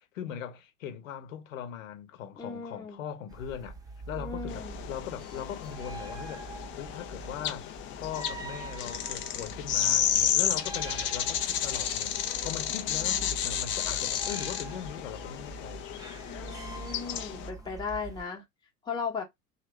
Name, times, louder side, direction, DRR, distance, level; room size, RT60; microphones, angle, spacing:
voice 1, 0.1-3.8 4.1-12.1 12.4-15.8, left 9 dB, 65° left, 1.1 m, -40 dB
voice 2, 2.4-3.0 4.2-4.8 12.7-13.4 16.3-18.4 18.8-19.2, left 5 dB, 10° left, 1.0 m, -37 dB
sound 1, 3.3-18.3, right 3 dB, 10° right, 0.7 m, -43 dB
sound 2, 4.5-17.5, left 10 dB, 30° left, 0.5 m, -32 dB
2.8 x 2.4 x 3.2 m
hypercardioid pair, 95°, 43 cm